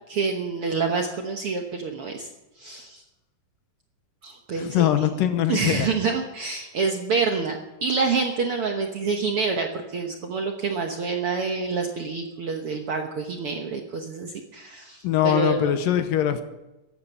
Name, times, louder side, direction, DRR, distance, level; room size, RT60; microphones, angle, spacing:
voice 1, 0.1-2.3 2.6-3.0 4.2-4.9 5.5-15.8, right 4 dB, 65° right, 3 dB, 1.4 m, -27 dB
voice 2, 4.5-5.9 15.0-16.4, left 10 dB, 80° left, 9 dB, 2.7 m, -22 dB
15.0 x 11.5 x 6.8 m, 1.0 s
omnidirectional pair, 4.0 m